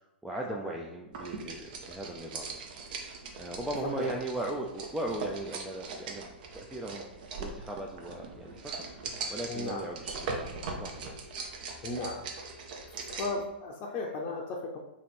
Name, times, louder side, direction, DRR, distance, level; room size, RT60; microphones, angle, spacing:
voice 1, 0.2-2.6 3.4-6.3 6.5-7.1 7.4-8.9 9.3-11.1, right 1 dB, 5° right, 0 dB, 0.3 m, -38 dB
sound 1, 1.1-13.4, right 4 dB, 55° right, 0.7 m, -40 dB
voice 2, 9.5-9.9 11.8-12.2 13.2-14.8, left 3 dB, 35° left, -2 dB, 0.6 m, -35 dB
3.0 x 2.9 x 4.2 m, 0.88 s
hypercardioid pair, 115°, 6 cm